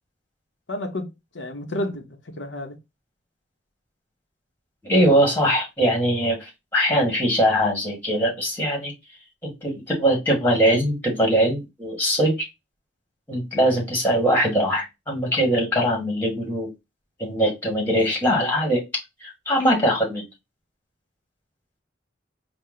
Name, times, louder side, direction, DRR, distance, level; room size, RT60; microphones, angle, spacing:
voice 1, 0.7-2.8, left 1 dB, 80° left, 1.0 m, -31 dB
voice 2, 4.8-8.9 9.4-12.5 13.3-16.7 17.2-18.8 19.2-20.2, equal, 10° left, 1.8 m, -21 dB
4.3 x 2.3 x 3.8 m
head